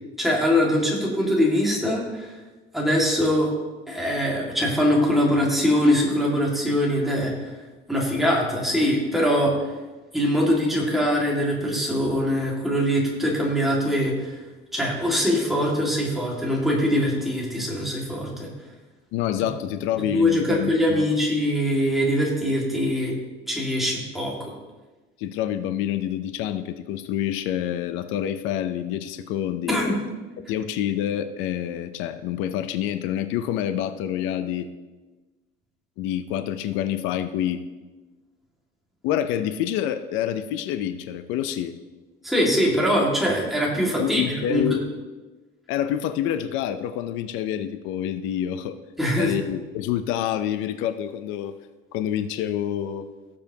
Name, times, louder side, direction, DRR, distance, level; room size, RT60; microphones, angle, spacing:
voice 1, 0.2-2.3 2.7-3.5 3.9-7.3 7.9-9.5 10.1-14.3 14.7-18.5 20.1-23.1 23.5-24.3 29.7-30.0 42.2-44.7 49.0-49.3, equal, ahead, -4 dB, 2.0 m, -22 dB
voice 2, 19.1-21.0 25.2-30.0 30.5-34.7 36.0-37.6 39.0-41.7 44.0-44.9 45.7-48.8 49.2-51.5 51.9-53.1, left 10 dB, 80° left, 10 dB, 0.6 m, -27 dB
16.5 x 7.4 x 2.9 m, 1.2 s
cardioid pair, 170°, 20 cm